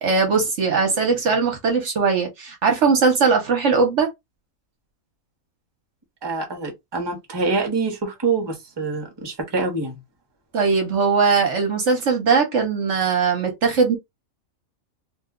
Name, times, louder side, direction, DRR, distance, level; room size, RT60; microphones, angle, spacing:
voice 1, 0.0-4.1 10.5-14.0, right 5 dB, 60° right, 1.0 m, -20 dB
voice 2, 6.2-10.0, right 3 dB, 20° right, 0.8 m, -25 dB
2.7 x 2.2 x 3.6 m
omnidirectional pair, 1.5 m